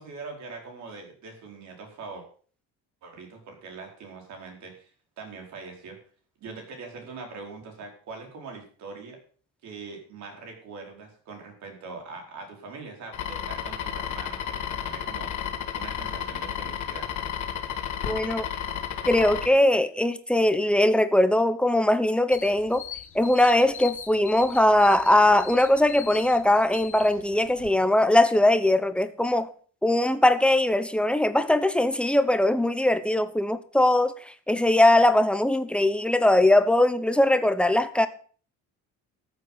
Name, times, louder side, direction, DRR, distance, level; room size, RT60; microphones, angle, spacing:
voice 1, 0.0-2.2 3.0-4.9 5.2-6.0 6.4-9.2 9.6-15.3 15.7-17.1, right 4 dB, 60° right, 4.8 m, -42 dB
sound 1, 13.1-19.5, left 9 dB, 70° left, 2.2 m, -32 dB
voice 2, 18.0-18.5 19.1-22.8 23.1-29.5 29.8-34.1 34.5-38.1, left 1 dB, 5° left, 0.8 m, -21 dB
sound 2, 22.3-27.7, left 9 dB, 40° left, 1.2 m, -42 dB
13.5 x 8.0 x 5.8 m
cardioid pair, 145°, 31 cm